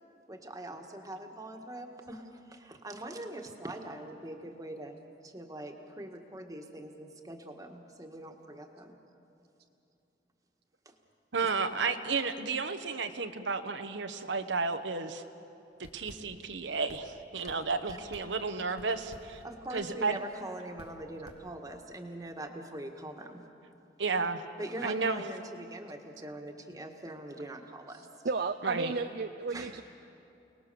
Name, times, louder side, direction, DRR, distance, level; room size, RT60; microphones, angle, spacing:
voice 1, 0.3-5.0 5.2-9.0 10.8-10.9 11.4-11.9 17.4-17.5 17.9-18.0 19.4-23.4 24.6-28.1 29.5-29.8, right 1 dB, 20° right, 3 dB, 1.7 m, -43 dB
voice 2, 11.3-15.2 15.8-19.4 19.7-20.2 24.0-24.4 24.8-25.2 28.6-28.9, right 4 dB, 80° right, 7 dB, 1.1 m, -32 dB
sound 1, 15.7-22.0, equal, 60° left, 1.8 m, -54 dB
voice 3, 28.2-29.8, right 4 dB, 60° right, 7 dB, 0.6 m, -33 dB
29.5 x 19.0 x 7.0 m, 2.8 s
head